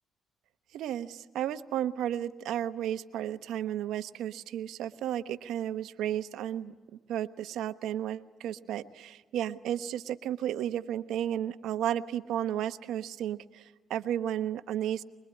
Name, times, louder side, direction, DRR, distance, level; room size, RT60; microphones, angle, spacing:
voice 1, 0.7-6.7 7.1-15.0, right 11 dB, 85° right, 12 dB, 1.0 m, -33 dB
24.5 x 22.5 x 9.7 m, 1.3 s
cardioid pair, 90°, 0 cm